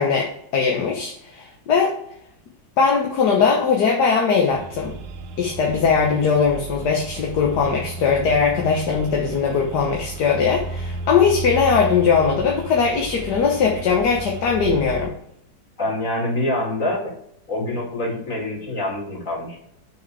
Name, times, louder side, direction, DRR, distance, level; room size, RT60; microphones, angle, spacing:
voice 1, 0.0-1.9 2.8-4.9 5.4-15.1, left 5 dB, 65° left, 0 dB, 1.5 m, -20 dB
sound 1, 4.5-15.1, right 3 dB, 75° right, 1.3 m, -33 dB
voice 2, 15.8-17.2 17.5-19.6, left 1 dB, 45° left, -3 dB, 3.0 m, -25 dB
6.4 x 6.1 x 3.3 m, 0.70 s
omnidirectional pair, 2.0 m